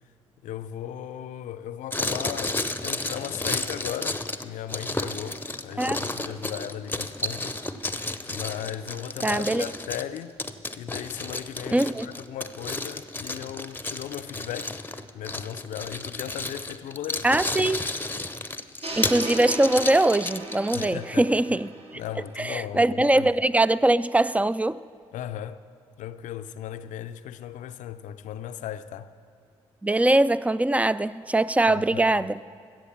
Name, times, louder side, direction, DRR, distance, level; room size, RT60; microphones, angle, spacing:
voice 1, 0.4-7.6 8.3-10.4 10.7-14.8 15.1-17.4 20.7-21.3 21.9-23.3 25.1-25.6 26.0-29.1 31.7-32.2, left 10 dB, 70° left, 0.5 m, -37 dB
sound 1, 1.9-20.9, left 2 dB, 15° left, 0.8 m, -32 dB
voice 2, 9.2-9.6 11.7-12.1 17.2-17.8 19.0-21.7 22.4-24.8 29.8-32.3, right 2 dB, 10° right, 0.4 m, -22 dB
sound 2, 18.8-22.8, right 2 dB, 45° right, 1.5 m, -37 dB
15.0 x 7.6 x 7.3 m
hypercardioid pair, 45°, 14 cm